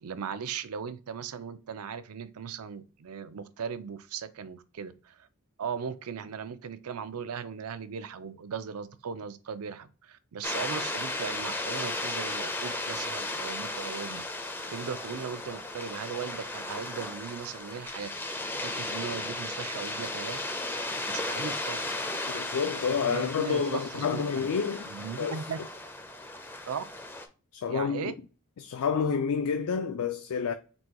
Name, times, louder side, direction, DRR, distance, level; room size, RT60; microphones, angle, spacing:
voice 1, 0.0-5.3 5.6-14.2 14.7-18.1 18.6-20.4 20.8-21.9 22.7-24.5 24.9-25.6 26.7-26.8 27.7-28.1, right 6 dB, 80° right, 0.5 m, -38 dB
sound 1, 10.4-27.3, left 2 dB, 10° left, 0.4 m, -35 dB
voice 2, 22.3-24.9 25.2-25.5 27.5-28.1 28.6-30.5, left 6 dB, 80° left, 0.4 m, -29 dB
4.0 x 2.2 x 4.5 m
head